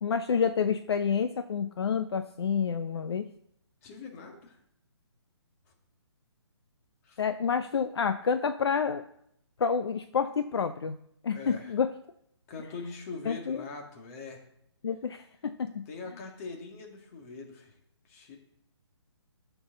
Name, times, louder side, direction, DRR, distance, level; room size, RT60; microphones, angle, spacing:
voice 1, 0.0-3.3 7.2-9.0 9.6-10.9 11.2-11.9 13.3-13.7 14.8-15.8, left 6 dB, 60° left, 10 dB, 0.7 m, -29 dB
voice 2, 3.8-4.6 7.0-7.2 11.3-11.8 12.5-14.5 15.9-17.7 18.1-18.4, left 4 dB, 30° left, 2 dB, 2.3 m, -42 dB
12.5 x 7.0 x 3.9 m, 0.74 s
figure-of-eight pair, 140°, 15 cm